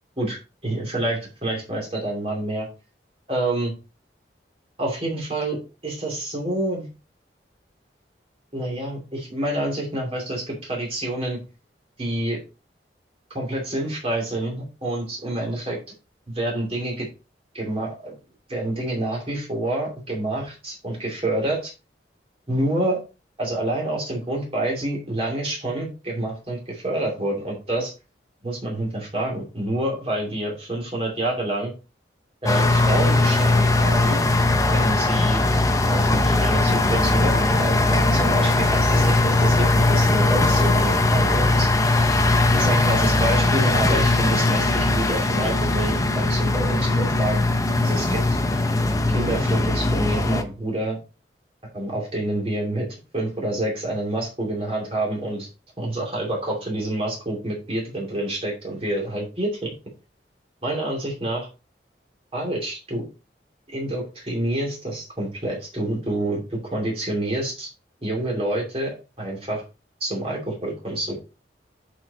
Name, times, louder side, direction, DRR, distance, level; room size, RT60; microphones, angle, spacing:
voice 1, 0.6-2.7 3.3-3.7 4.8-6.9 8.5-11.4 12.0-12.4 13.3-15.8 16.3-17.1 17.5-18.2 18.5-21.7 22.5-23.0 23.4-27.9 28.4-31.7 32.4-34.2 34.7-35.5 35.9-41.7 42.5-47.5 47.8-48.2 49.1-51.0 51.7-52.9 53.1-55.5 55.8-59.7 60.6-61.5 62.3-63.0 63.7-67.7 68.0-69.6 70.0-71.2, right 1 dB, 35° right, -2 dB, 2.7 m, -27 dB
sound 1, 32.5-50.4, left 2 dB, 20° left, 0.7 m, -20 dB
8.8 x 4.7 x 4.0 m, 0.31 s
head